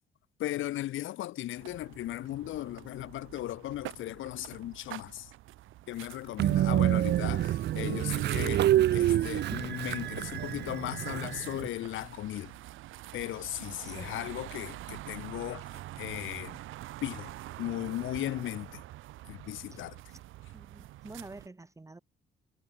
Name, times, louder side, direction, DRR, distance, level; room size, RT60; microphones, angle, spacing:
voice 1, 0.4-5.3 5.9-12.5 13.1-15.7 16.0-16.6 17.0-17.3 17.6-18.8 19.3-20.0, left 14 dB, 80° left, 0.9 m, -37 dB
sound 1, 1.6-21.5, right 15 dB, 85° right, 1.3 m, -47 dB
Train, 6.4-11.7, right 13 dB, 60° right, 0.5 m, -27 dB
voice 2, 13.7-14.2 19.7-19.8 20.1-20.2 20.5-22.0, right 2 dB, 15° right, 1.3 m, -48 dB
cardioid pair, 90°, 20 cm